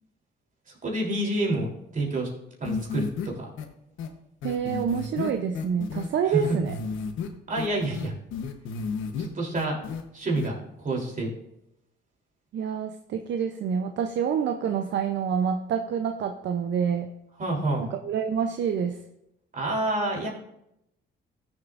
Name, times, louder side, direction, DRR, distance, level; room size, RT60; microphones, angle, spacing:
voice 1, 0.8-2.3 2.6-3.5 6.3-6.6 7.5-8.1 9.2-9.8 10.1-11.3 17.4-17.9 19.5-20.3, right 2 dB, 40° right, -2 dB, 3.4 m, -28 dB
sound 1, 2.6-3.3 3.6-3.7 4.0-4.1 4.4-6.1 6.4-7.3 7.6-9.3 9.5-10.0 10.3-10.5, left 5 dB, 80° left, 1.1 m, -32 dB
voice 2, 4.4-6.7 12.5-17.1 17.8-19.0, right 7 dB, 65° right, 7 dB, 0.7 m, -27 dB
14.5 x 7.3 x 2.5 m, 0.83 s
cardioid pair, 90°, 20 cm